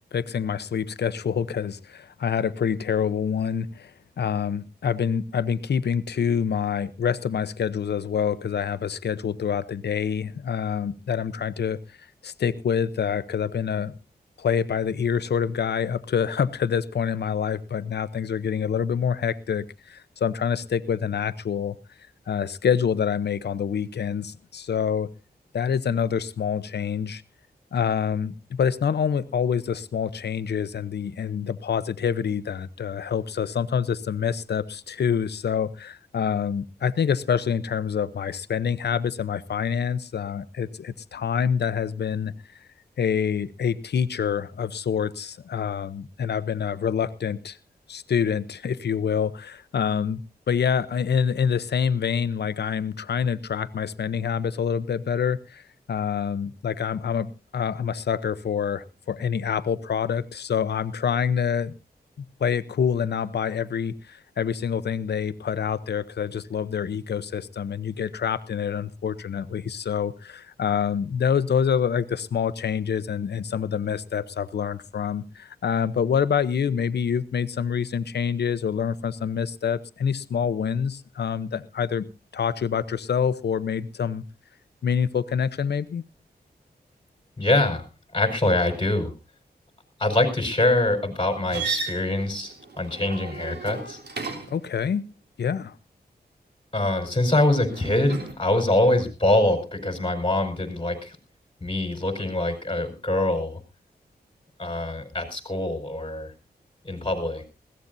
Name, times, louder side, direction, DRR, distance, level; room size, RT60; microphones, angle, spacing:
voice 1, 0.1-3.9 4.2-12.0 12.2-14.0 14.4-21.8 22.3-25.1 25.5-27.2 27.7-42.3 43.0-47.6 47.9-55.6 55.9-61.7 62.4-82.1 82.3-84.2 84.8-86.0 94.5-95.0 95.4-95.7, left 7 dB, 80° left, 0.9 m, -26 dB
voice 2, 87.4-87.8 88.1-89.1 90.0-94.0 96.7-101.2 101.6-103.6 104.6-106.3 106.8-107.5, left 1 dB, 30° left, 5.1 m, -24 dB
sound 1, 91.5-94.7 97.7-98.3, right 4 dB, 80° right, 3.5 m, -34 dB
20.5 x 16.5 x 2.7 m
cardioid pair, 70°, 17 cm